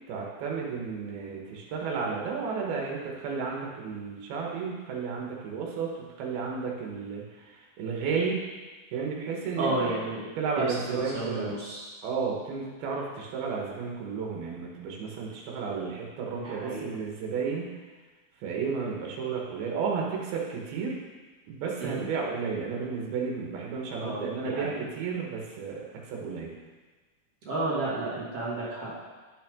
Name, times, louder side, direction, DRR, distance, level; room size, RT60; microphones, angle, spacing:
voice 1, 0.1-8.4 8.9-9.9 10.4-11.5 12.0-17.7 18.4-21.0 21.5-26.5, right 5 dB, 90° right, -2 dB, 3.3 m, -32 dB
voice 2, 9.5-10.2 10.6-11.9 16.3-16.9 21.8-22.1 24.0-24.8 27.4-29.0, right 2 dB, 45° right, -7 dB, 3.0 m, -32 dB
9.8 x 9.0 x 3.7 m, 1.3 s
omnidirectional pair, 4.3 m